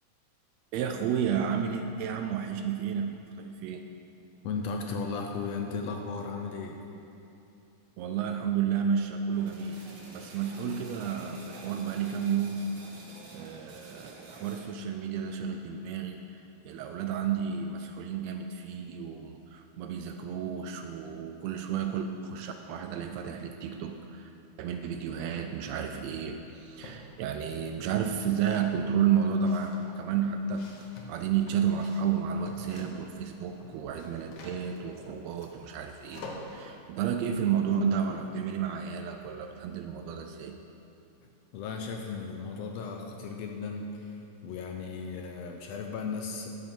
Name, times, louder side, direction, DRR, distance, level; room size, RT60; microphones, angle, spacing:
voice 1, 0.7-3.8 8.0-9.8 10.1-12.6 13.3-24.3 24.6-40.6, right 7 dB, 80° right, 5 dB, 1.6 m, -31 dB
voice 2, 4.4-6.8 41.5-44.1 44.4-46.5, left 4 dB, 75° left, 2 dB, 1.6 m, -35 dB
sound 1, 9.3-14.6, right 2 dB, 55° right, 1.4 m, -48 dB
sound 2, 26.3-27.0 27.4-33.2 33.5-36.7, left 2 dB, 60° left, 1.2 m, -47 dB
10.5 x 7.9 x 5.3 m, 2.8 s
omnidirectional pair, 3.3 m